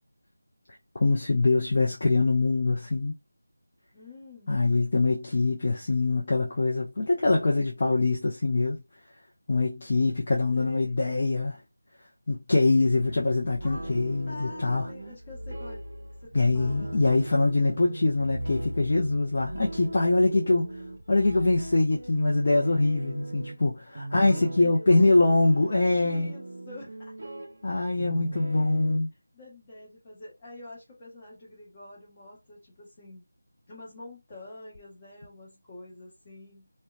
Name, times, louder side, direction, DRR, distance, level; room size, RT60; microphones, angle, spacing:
voice 1, 0.9-3.1 4.5-8.8 9.5-11.6 12.3-14.9 16.3-20.7 21.1-26.3 27.6-29.1, left 2 dB, 35° left, 0.4 m, -24 dB
voice 2, 3.9-4.7 10.5-11.0 12.6-13.1 13.6-13.9 14.3-15.8 16.2-17.1 24.1-25.4 26.0-27.3 28.4-28.7 29.3-33.3 33.7-36.7, left 2 dB, 20° left, 1.0 m, -46 dB
sound 1, 13.1-29.0, right 1 dB, 55° right, 0.6 m, -38 dB
2.8 x 2.1 x 2.3 m
figure-of-eight pair, 175°, 0 cm